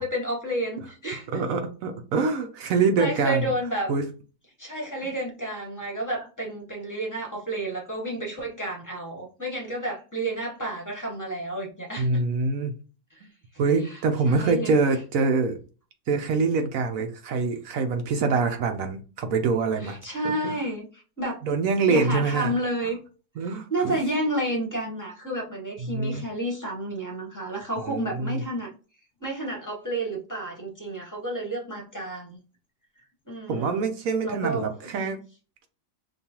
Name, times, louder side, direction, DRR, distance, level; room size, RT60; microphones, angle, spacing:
voice 1, 0.0-1.4 3.0-3.9 4.6-12.2 13.1-13.2 13.8-14.0 14.3-14.7 19.8-21.4 21.9-23.0 23.4-28.7 29.2-32.4 33.3-33.9 34.2-35.1, right 1 dB, 15° left, -1 dB, 0.8 m, -31 dB
voice 2, 1.3-3.5 3.9-4.0 12.0-12.7 13.6-15.6 16.1-20.0 20.2-20.5 21.4-22.5 23.4-24.0 25.8-26.2 27.9-28.4 33.5-35.2, right 4 dB, 70° right, 6 dB, 0.8 m, -25 dB
5.4 x 2.3 x 2.9 m, 0.36 s
omnidirectional pair, 1.9 m